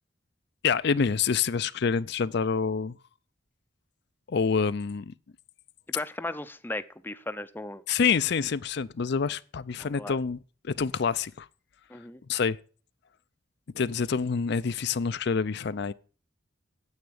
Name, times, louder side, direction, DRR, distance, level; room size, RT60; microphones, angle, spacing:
voice 1, 0.6-3.0 4.3-5.1 7.9-11.5 12.3-12.6 13.7-15.9, left 6 dB, 60° left, 0.5 m, -27 dB
voice 2, 5.9-7.8 9.8-10.2 11.9-12.2, left 2 dB, 10° left, 0.5 m, -36 dB
9.7 x 8.0 x 8.5 m
head